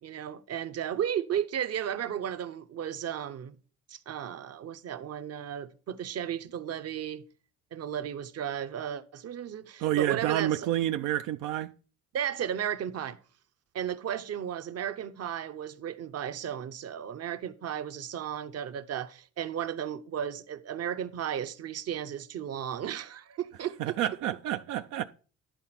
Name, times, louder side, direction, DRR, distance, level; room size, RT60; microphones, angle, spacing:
voice 1, 0.0-3.6 3.9-7.2 7.7-10.7 12.1-13.2 13.7-23.9, right 9 dB, 55° right, 0.8 m, -34 dB
voice 2, 9.8-11.7 23.8-25.0, right 13 dB, 85° right, 0.5 m, -29 dB
10.5 x 4.0 x 5.8 m
cardioid pair, 90°, 30 cm